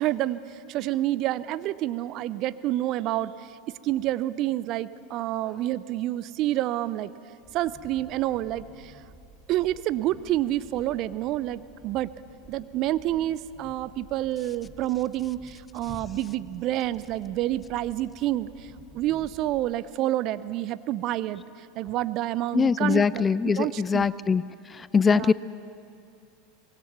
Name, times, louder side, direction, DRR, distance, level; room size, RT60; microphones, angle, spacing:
voice 1, 0.0-3.6 3.8-7.1 7.5-8.9 9.5-12.1 12.5-24.1 25.1-25.3, right 14 dB, 45° right, 16 dB, 0.6 m, -28 dB
Train, 7.4-19.6, equal, 10° right, 5.9 m, -51 dB
voice 2, 22.5-24.4 24.8-25.3, left 5 dB, 20° left, 19 dB, 0.4 m, -22 dB
24.0 x 20.0 x 6.0 m, 2.5 s
figure-of-eight pair, 80°, 0 cm